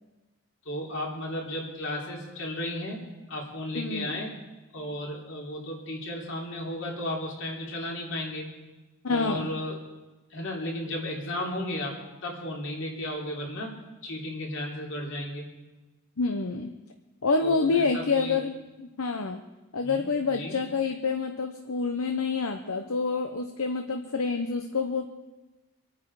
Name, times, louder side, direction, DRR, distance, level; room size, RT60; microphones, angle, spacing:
voice 1, 0.6-4.4 4.7-8.5 9.1-9.8 10.3-13.7 14.0-15.4 17.4-18.4 19.8-20.0 20.3-20.6, left 1 dB, 55° left, -1 dB, 3.3 m, -34 dB
voice 2, 3.7-4.2 9.0-9.5 16.2-16.7 17.2-19.4 19.7-25.1, left 4 dB, 75° left, 6 dB, 0.9 m, -27 dB
25.0 x 9.2 x 4.8 m, 1.2 s
head